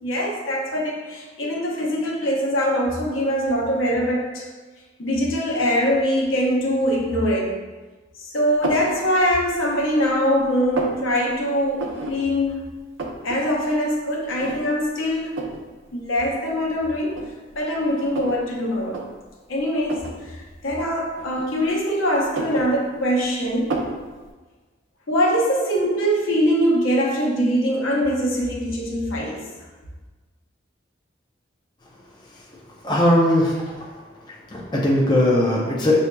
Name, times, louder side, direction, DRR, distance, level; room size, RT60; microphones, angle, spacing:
voice 1, 0.0-4.5 5.0-7.6 8.2-12.6 13.2-15.4 15.9-17.3 17.5-19.0 19.5-23.8 25.1-29.5, equal, 85° left, -2 dB, 0.8 m, -23 dB
sound 1, 8.6-8.9 9.5-10.1 10.4-11.0 11.8-12.2 12.5-12.6 12.8-13.4 13.7-13.8 14.4-14.8 15.4-15.6 16.5-16.6 17.1-18.4 18.8-19.0 19.8-20.2 21.2-21.8 22.2-23.2 23.7-24.0, right 3 dB, 80° right, 0.5 m, -30 dB
voice 2, 32.8-33.5 34.5-36.0, left 1 dB, 20° left, -4 dB, 0.5 m, -18 dB
5.8 x 2.7 x 2.2 m, 1.3 s
head